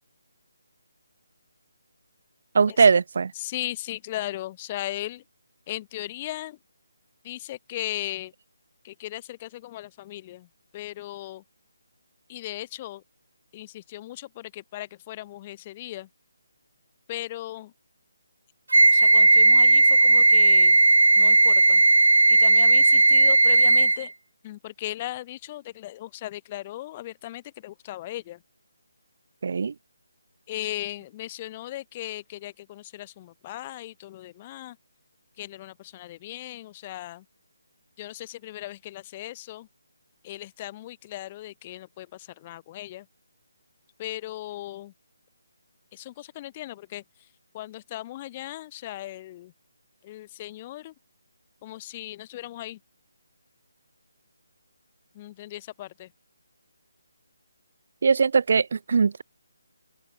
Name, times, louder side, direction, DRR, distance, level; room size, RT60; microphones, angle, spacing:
voice 1, 2.5-3.3 29.4-29.7 58.0-59.2, right 5 dB, 55° right, 1.2 m, -20 dB
voice 2, 3.4-5.2 5.7-6.6 7.2-8.3 8.8-10.5 10.7-11.4 12.3-13.0 13.5-16.1 17.1-17.7 18.7-20.8 21.2-21.8 22.3-24.1 24.4-28.4 30.5-34.8 35.4-37.2 38.0-39.7 40.2-43.1 44.0-44.9 45.9-47.0 47.5-49.5 50.0-50.9 51.6-52.8 55.1-56.1, left 15 dB, 25° left, 4.7 m, -37 dB
Wind instrument woodwind instrument, 18.7-24.1, right 2 dB, 80° right, 1.4 m, -16 dB
open air
figure-of-eight pair, 155°, 0 cm